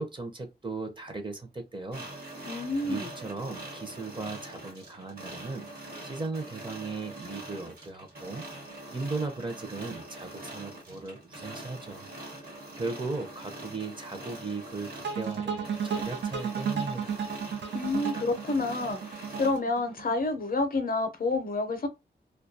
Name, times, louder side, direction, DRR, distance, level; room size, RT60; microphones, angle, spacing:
voice 1, 0.0-2.1 2.8-5.7 6.0-12.1 12.3-12.5 12.8-17.3, right 3 dB, 25° right, 0.6 m, -37 dB
sound 1, 1.9-19.6, right 1 dB, 55° right, 1.1 m, -43 dB
voice 2, 2.5-3.1 17.7-21.9, left 3 dB, 50° left, 0.5 m, -29 dB
sound 2, 15.0-20.1, right 7 dB, 80° right, 0.4 m, -33 dB
2.3 x 2.2 x 2.6 m
wide cardioid pair, 105°, 18 cm